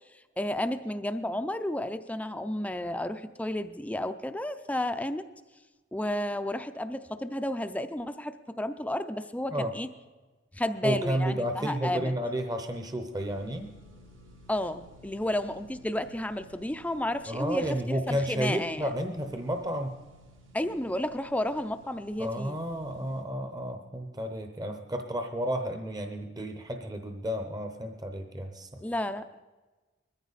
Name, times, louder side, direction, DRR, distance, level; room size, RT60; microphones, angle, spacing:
voice 1, 0.4-5.3 5.9-9.9 10.5-12.1 14.5-18.9 20.5-22.6 28.8-29.4, left 1 dB, 10° left, 9 dB, 0.5 m, -32 dB
voice 2, 10.8-13.7 17.3-19.9 22.2-28.7, equal, 20° right, 5 dB, 0.8 m, -31 dB
sound 1, 13.1-23.2, left 1 dB, 85° right, 3.0 m, -55 dB
21.0 x 14.5 x 4.1 m, 1.2 s
head